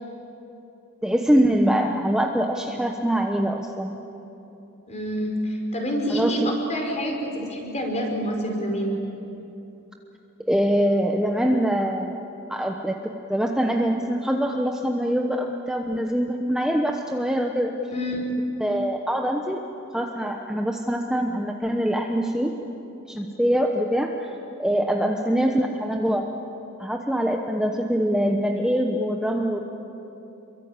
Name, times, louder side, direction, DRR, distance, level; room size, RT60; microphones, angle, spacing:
voice 1, 1.0-4.0 6.1-6.5 10.5-12.2 12.5-17.7 18.6-19.6 19.9-22.6 23.1-24.3 24.6-26.4 26.8-29.7, equal, 5° right, 2 dB, 1.0 m, -24 dB
voice 2, 4.9-8.9 17.9-18.2, equal, 30° left, 1 dB, 5.2 m, -27 dB
28.0 x 23.5 x 8.9 m, 3.0 s
head